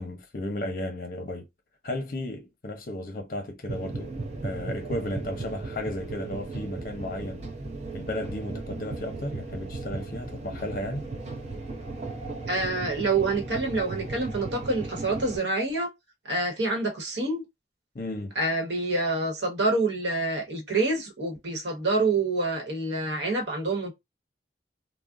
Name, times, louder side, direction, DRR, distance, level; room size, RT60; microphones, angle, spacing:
voice 1, 0.0-1.5 1.8-4.1 4.4-7.4 7.9-11.1 17.9-18.3, left 1 dB, 50° left, 0.7 m, -34 dB
sound 1, 3.7-15.4, right 2 dB, 40° right, 0.6 m, -36 dB
voice 2, 12.5-15.9 16.2-17.4 18.3-23.9, right 2 dB, 80° right, 1.0 m, -27 dB
2.4 x 2.1 x 3.6 m
head